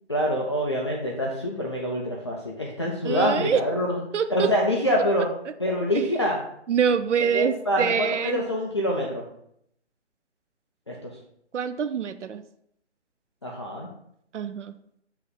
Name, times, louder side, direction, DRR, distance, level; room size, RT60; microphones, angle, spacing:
voice 1, 0.1-4.0 4.3-5.3 5.6-6.4 7.2-9.3 10.9-11.1 13.4-13.9, equal, 25° left, -2 dB, 0.4 m, -26 dB
voice 2, 3.0-3.6 4.1-4.5 5.9-6.1 6.7-8.5 11.5-12.4 14.3-14.7, right 7 dB, 85° right, 11 dB, 0.5 m, -25 dB
7.6 x 3.2 x 3.9 m, 0.73 s
figure-of-eight pair, 150°, 35 cm